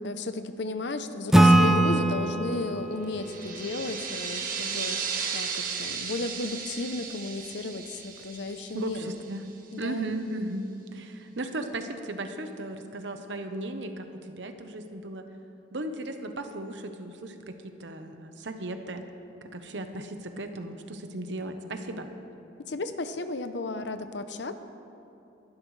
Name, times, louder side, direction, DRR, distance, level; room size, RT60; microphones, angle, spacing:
voice 1, 0.0-5.0 5.3-9.2 9.7-10.2 22.6-24.5, left 3 dB, 65° left, 9 dB, 0.7 m, -34 dB
Acoustic guitar / Strum, 1.3-4.8, right 1 dB, ahead, 0.6 m, -23 dB
sound 1, 3.1-9.5, right 6 dB, 45° right, 1.3 m, -35 dB
voice 2, 8.7-9.4 9.8-14.1 14.4-15.2 15.7-19.0 19.5-22.1, right 1 dB, 70° right, 7 dB, 1.0 m, -36 dB
22.0 x 12.0 x 3.3 m, 2.8 s
head